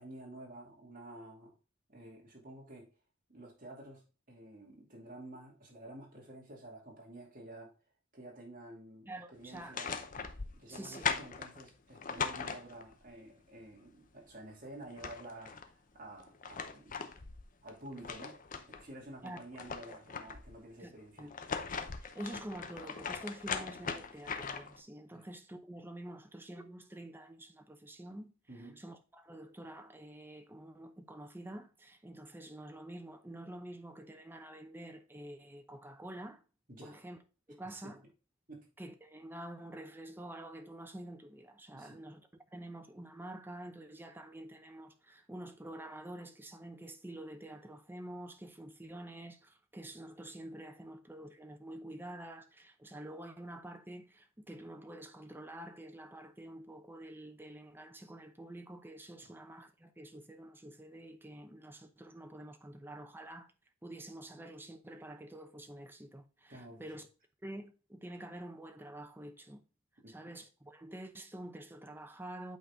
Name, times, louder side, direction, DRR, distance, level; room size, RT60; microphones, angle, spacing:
voice 1, 0.0-1.5 1.9-2.9 3.3-7.7 8.1-10.0 10.5-17.1 17.6-21.3 25.1-25.3 28.5-28.8 36.7-37.0 37.6-37.9 38.5-38.7 41.7-42.0 59.2-59.3 66.5-66.9 70.0-70.3, right 1 dB, 45° right, 2.5 m, -51 dB
voice 2, 9.1-9.8 10.7-11.1 19.2-19.4 20.8-20.9 21.2-21.3 22.0-28.3 28.8-36.4 36.8-37.2 37.5-38.0 38.8-42.2 42.5-63.5 63.8-67.1 67.4-69.6 70.1-72.6, right 1 dB, 10° right, 0.7 m, -48 dB
sound 1, 9.5-13.1 14.5-14.6 14.8-15.7 16.2-18.9 19.3-20.6 21.2-24.8, left 5 dB, 40° left, 0.7 m, -40 dB
8.5 x 3.9 x 3.7 m
head